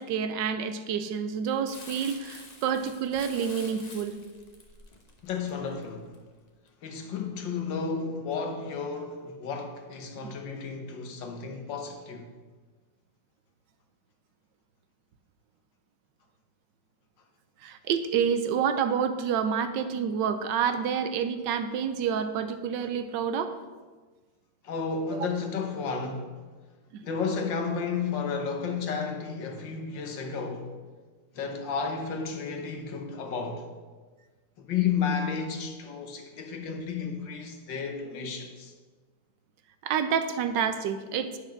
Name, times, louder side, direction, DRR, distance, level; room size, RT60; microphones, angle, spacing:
voice 1, 0.0-4.2 10.2-10.3 17.6-23.6 25.1-25.3 26.9-27.0 39.8-41.4, right 7 dB, 75° right, 1.3 m, -28 dB
Crumpling crinkling, 1.7-6.2 6.7-6.8, left 3 dB, 35° left, 0.7 m, -48 dB
voice 2, 5.2-6.1 6.8-12.3 24.6-26.4 27.0-30.7 31.4-33.7 34.6-38.7, left 5 dB, 75° left, 1.8 m, -32 dB
9.7 x 5.2 x 5.9 m
omnidirectional pair, 2.0 m